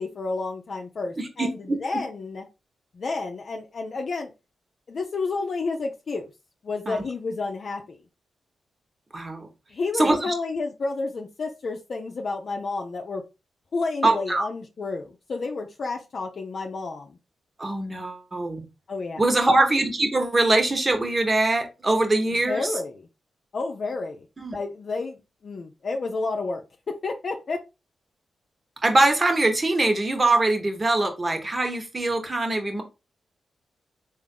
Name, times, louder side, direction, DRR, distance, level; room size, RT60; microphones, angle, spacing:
voice 1, 0.0-2.4 2.9-4.3 4.9-6.3 6.6-8.0 9.7-13.2 13.7-17.2 18.9-19.2 22.4-23.1 23.5-24.3 24.5-27.6, left 3 dB, 60° left, 2 dB, 0.5 m, -30 dB
voice 2, 1.2-1.8 6.9-7.0 9.1-9.5 10.0-10.3 14.0-14.5 17.6-18.6 19.2-22.7 24.4-24.6 28.8-32.8, right 2 dB, 35° right, 5 dB, 1.2 m, -23 dB
3.6 x 2.5 x 3.7 m, 0.26 s
supercardioid pair, 40°, 0 cm